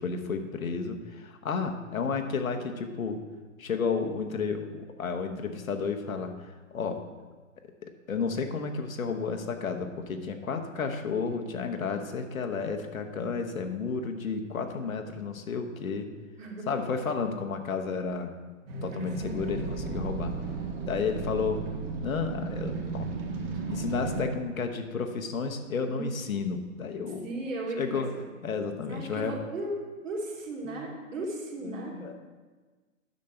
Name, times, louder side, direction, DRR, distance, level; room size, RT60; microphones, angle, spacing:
voice 1, 0.0-3.2 3.6-7.0 8.1-16.1 16.7-18.3 18.8-20.3 20.8-21.6 22.0-23.1 23.7-27.3 27.8-28.1 28.4-29.3 30.6-30.8 31.6-32.2, left 5 dB, 85° left, 5 dB, 1.1 m, -32 dB
sound 1, 18.7-24.2, right 4 dB, 45° right, 1.7 m, -34 dB
voice 2, 27.2-28.3 28.9-29.8 30.0-32.0, right 2 dB, 70° right, -2 dB, 2.6 m, -36 dB
9.4 x 6.5 x 4.4 m, 1.4 s
hypercardioid pair, 130°, 40 cm